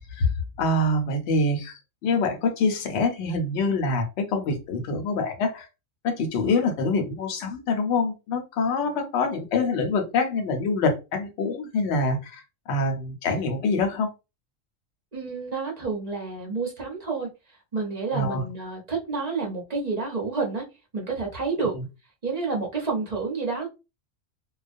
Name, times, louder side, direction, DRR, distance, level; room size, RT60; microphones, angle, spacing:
voice 1, 0.6-5.7 6.0-12.4 12.7-14.1 18.1-18.4 21.6-21.7, left 3 dB, 65° left, 4 dB, 0.9 m, -25 dB
voice 2, 15.1-17.3 17.7-20.7 20.9-21.7 22.2-23.7, right 4 dB, 40° right, -2 dB, 0.6 m, -29 dB
2.3 x 2.1 x 2.5 m, 0.27 s
omnidirectional pair, 1.3 m